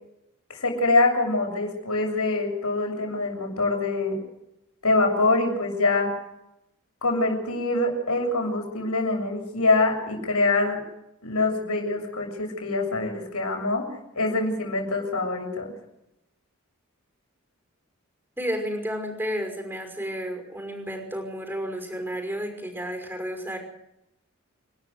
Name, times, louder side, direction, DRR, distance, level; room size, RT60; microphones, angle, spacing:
voice 1, 0.5-4.2 4.8-6.1 7.0-10.8 11.2-13.9 14.1-15.7, left 2 dB, 80° left, 2 dB, 7.2 m, -24 dB
voice 2, 18.4-23.6, equal, 10° right, 4 dB, 5.8 m, -32 dB
28.5 x 12.5 x 8.0 m, 0.85 s
head